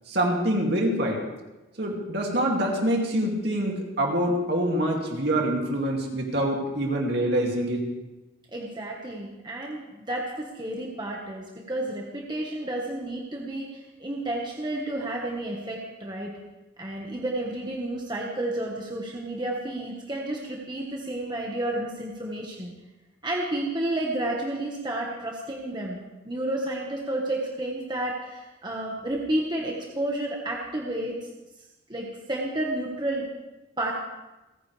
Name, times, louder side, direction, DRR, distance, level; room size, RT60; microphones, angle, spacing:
voice 1, 0.1-1.2 1.8-7.9, right 1 dB, 55° right, 0 dB, 2.6 m, -25 dB
voice 2, 8.5-16.3 16.8-22.7 23.2-26.0 26.2-31.3 31.9-33.3 33.8-33.9, right 1 dB, 20° right, -2 dB, 1.5 m, -31 dB
29.5 x 10.0 x 3.4 m, 1.1 s
head